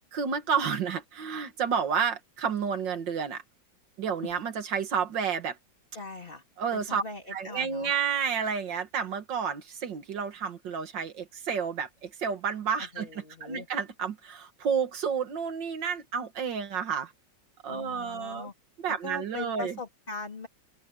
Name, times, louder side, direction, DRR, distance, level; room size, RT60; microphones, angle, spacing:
voice 1, 0.1-3.4 4.0-5.6 6.6-7.0 7.3-17.1 17.6-18.5 18.8-19.8, right 6 dB, 80° right, 2.2 m, -30 dB
voice 2, 5.9-6.4 6.7-7.9 12.8-13.7 17.7-18.5 18.9-20.5, left 3 dB, 30° left, 3.2 m, -40 dB
open air
omnidirectional pair, 2.0 m